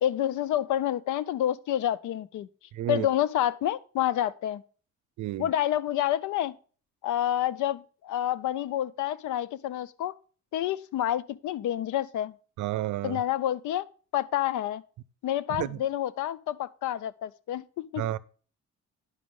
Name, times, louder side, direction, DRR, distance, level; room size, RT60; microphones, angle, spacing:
voice 1, 0.0-2.5 2.9-4.6 5.4-6.5 7.0-10.1 10.5-12.3 13.0-13.9 14.1-14.8 15.2-18.0, left 12 dB, 75° left, 0.6 m, -28 dB
voice 2, 2.7-3.1 5.2-5.5 12.6-13.2 15.5-15.8 18.0-18.2, right 14 dB, 75° right, 0.6 m, -31 dB
9.8 x 6.1 x 3.6 m
cardioid pair, 90°, 30 cm